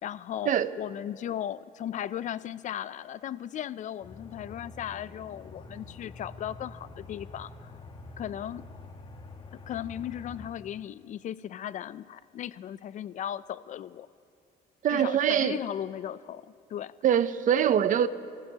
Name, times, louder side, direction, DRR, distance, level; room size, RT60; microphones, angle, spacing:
voice 1, 0.0-7.7 8.2-8.7 9.5-14.1 14.9-16.4 16.7-16.9, left 10 dB, 45° left, 0.4 m, -36 dB
Aircraft, 4.0-10.5, left 3 dB, 30° left, 1.2 m, -46 dB
voice 2, 14.8-15.6 17.0-18.1, right 9 dB, 50° right, 0.6 m, -23 dB
29.0 x 14.5 x 2.8 m
cardioid pair, 110°, 17 cm